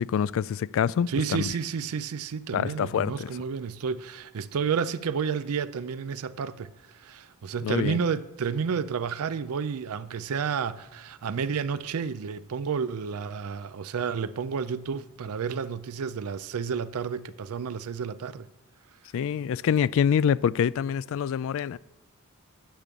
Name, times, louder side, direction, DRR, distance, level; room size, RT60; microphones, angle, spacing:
voice 1, 0.0-1.5 2.5-3.3 7.6-8.0 19.1-21.8, left 8 dB, 65° left, 0.3 m, -26 dB
voice 2, 1.1-18.5, right 6 dB, 85° right, 0.4 m, -31 dB
10.5 x 6.8 x 7.3 m
head